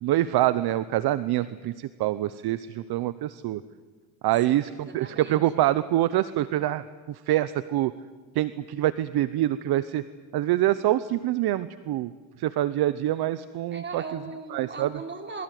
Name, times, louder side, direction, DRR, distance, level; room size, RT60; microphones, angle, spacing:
voice 1, 0.0-3.6 4.2-7.9 8.3-10.0 10.3-12.1 12.4-14.0 14.5-14.9, right 14 dB, 55° right, 15 dB, 0.9 m, -25 dB
voice 2, 4.4-5.5 13.7-15.4, right 4 dB, 25° right, 4 dB, 3.9 m, -39 dB
27.0 x 22.5 x 9.3 m, 1.4 s
cardioid pair, 120°, 46 cm